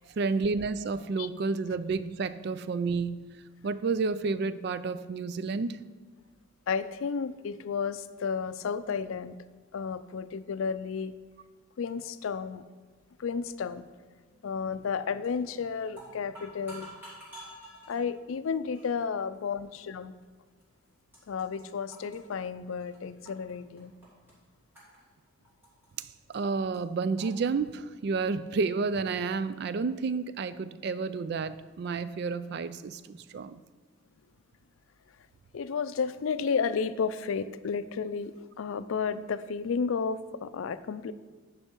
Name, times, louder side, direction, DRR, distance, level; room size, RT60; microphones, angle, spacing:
voice 1, 0.2-3.2 3.6-5.8 26.0-33.6, right 4 dB, 55° right, 14 dB, 0.3 m, -30 dB
voice 2, 6.7-9.4 9.7-11.1 11.8-12.6 13.2-13.9 14.4-16.9 17.9-20.1 21.3-23.9 35.5-41.1, left 6 dB, 80° left, 14 dB, 0.4 m, -32 dB
sound 1, 15.2-15.5 15.8-18.0 18.7-18.9 19.7-19.8 20.6-20.7 20.9-21.6 21.9-23.5 23.8-24.3 24.7-25.9 26.3-26.4 26.7-26.8 27.2-27.3, right 1 dB, 10° right, 3.0 m, -48 dB
9.9 x 5.6 x 4.5 m, 1.4 s
head